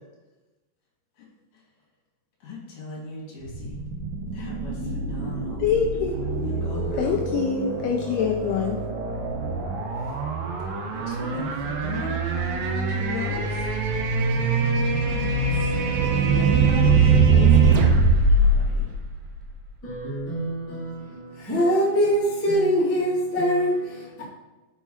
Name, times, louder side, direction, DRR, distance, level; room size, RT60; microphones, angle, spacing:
voice 1, 2.4-3.8 4.3-5.6 6.4-7.2 10.9-13.6 16.0-17.1 18.4-18.9, left 4 dB, 50° left, 3.7 m, -36 dB
sound 1, 3.4-19.6, right 4 dB, 80° right, 2.1 m, -23 dB
voice 2, 5.6-6.6 7.0-8.8, left 7 dB, 85° left, 2.2 m, -25 dB
voice 3, 15.1-15.5 17.3-18.1 19.8-24.2, equal, 15° left, 0.5 m, -25 dB
7.0 x 4.6 x 5.6 m
omnidirectional pair, 5.1 m